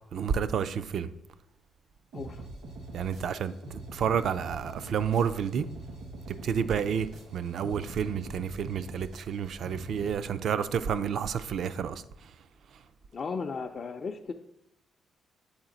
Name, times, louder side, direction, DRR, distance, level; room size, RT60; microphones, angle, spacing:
voice 1, 0.1-1.1 2.9-3.5 3.9-5.7 6.4-7.1 7.3-12.0, right 7 dB, 70° right, 0.3 m, -30 dB
voice 2, 2.1-2.5 13.1-14.3, left 5 dB, 50° left, 0.4 m, -35 dB
sound 1, 2.1-10.1, right 2 dB, 85° right, 1.1 m, -44 dB
7.2 x 4.0 x 3.8 m
supercardioid pair, 55°, 0 cm